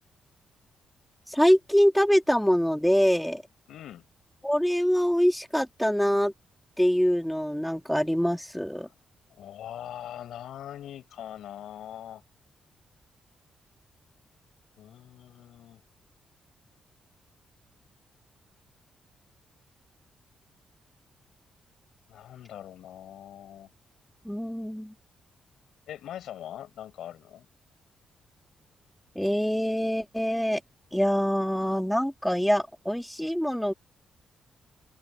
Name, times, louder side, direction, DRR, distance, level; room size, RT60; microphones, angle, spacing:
voice 1, 1.3-3.4 4.4-6.3 6.8-8.9 24.2-24.9 29.1-30.6 30.9-33.7, equal, ahead, 1.6 m, -24 dB
voice 2, 3.7-4.0 9.3-12.2 14.8-15.8 22.1-23.7 25.9-27.5, left 11 dB, 85° left, 6.3 m, -42 dB
open air
cardioid pair, 145°, 0 cm